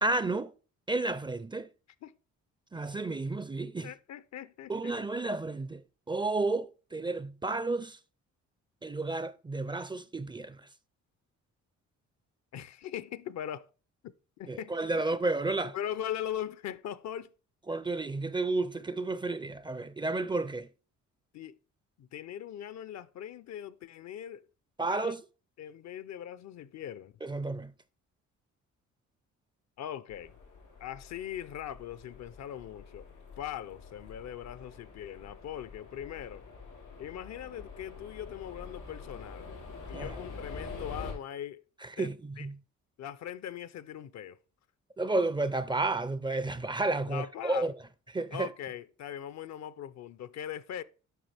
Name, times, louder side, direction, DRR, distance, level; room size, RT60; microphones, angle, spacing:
voice 1, 0.0-0.5 0.9-1.7 2.7-3.9 4.7-5.8 6.1-8.0 8.8-10.6 14.5-15.7 17.7-20.7 24.8-25.2 27.2-27.7 39.9-40.2 42.0-42.6 45.0-47.7 48.1-48.5, right 2 dB, 15° right, 0.4 m, -31 dB
voice 2, 3.8-5.0 12.5-13.7 14.0-14.7 15.7-17.3 21.3-21.6 22.0-24.5 24.9-25.1 25.6-27.1 29.8-30.3 30.8-33.1 33.4-36.4 37.0-39.5 39.9-41.6 42.0-42.5 43.0-44.4 47.1-47.7 48.3-50.8, left 10 dB, 65° left, 0.6 m, -40 dB
sound 1, 30.1-41.1, left 4 dB, 85° left, 4.2 m, -46 dB
9.2 x 5.7 x 3.4 m
cardioid pair, 90°, 30 cm